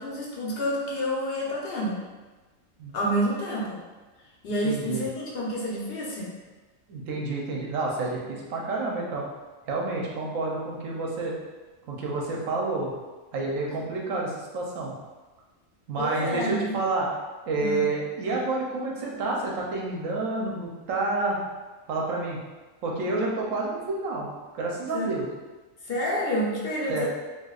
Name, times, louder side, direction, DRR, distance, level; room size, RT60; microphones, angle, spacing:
voice 1, 0.0-2.0 2.9-3.8 4.4-6.3 16.0-16.8 17.6-17.8 24.9-25.1 25.8-27.1, equal, 55° left, -4 dB, 0.9 m, -29 dB
voice 2, 4.6-5.1 6.9-9.3 9.7-11.3 11.9-12.9 13.3-14.9 15.9-17.1 17.5-21.4 21.9-22.4 22.8-25.3 26.9-27.1, right 3 dB, 85° right, -2 dB, 1.1 m, -29 dB
4.4 x 2.5 x 2.4 m, 1.2 s
omnidirectional pair, 1.3 m